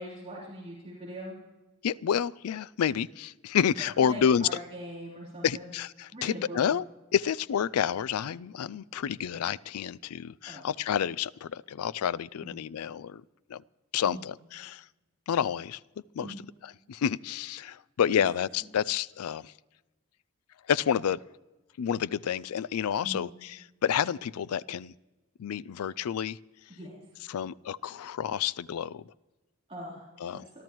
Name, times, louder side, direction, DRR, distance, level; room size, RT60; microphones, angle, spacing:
voice 1, 0.0-1.4 4.0-5.7 6.1-6.7 10.4-10.6 12.4-12.6 14.1-14.3 16.2-16.4 18.1-18.2 23.0-23.3 26.7-27.0 29.7-30.1, equal, 30° right, -6 dB, 3.6 m, -41 dB
voice 2, 1.8-4.5 5.4-6.9 7.1-13.2 13.5-13.6 13.9-14.8 15.3-15.8 16.1-16.3 16.6-19.5 20.7-21.2 21.8-24.9 25.4-26.4 27.3-29.1 30.2-30.5, left 8 dB, 85° left, 20 dB, 0.4 m, -29 dB
27.0 x 12.5 x 3.0 m, 1.1 s
head